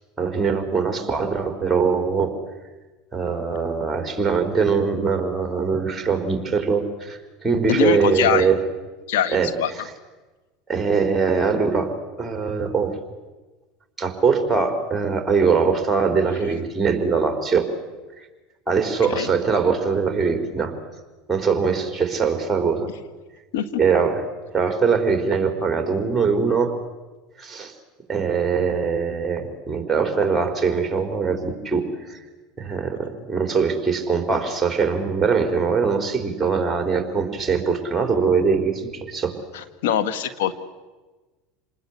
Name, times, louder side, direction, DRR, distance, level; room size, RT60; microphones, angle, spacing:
voice 1, 0.2-2.3 3.1-8.6 9.3-9.8 10.7-11.9 12.2-13.0 14.0-17.7 18.2-18.3 18.7-20.7 21.3-22.9 23.8-24.2 24.5-26.7 27.4-27.7 28.1-32.2 32.6-39.4, right 5 dB, 10° right, 6 dB, 4.4 m, -22 dB
voice 2, 7.7-8.5 9.1-9.7 19.1-19.3 23.5-23.8 39.5-40.5, left 9 dB, 80° left, 10 dB, 1.8 m, -23 dB
27.5 x 20.0 x 8.4 m, 1.2 s
supercardioid pair, 105°, 0 cm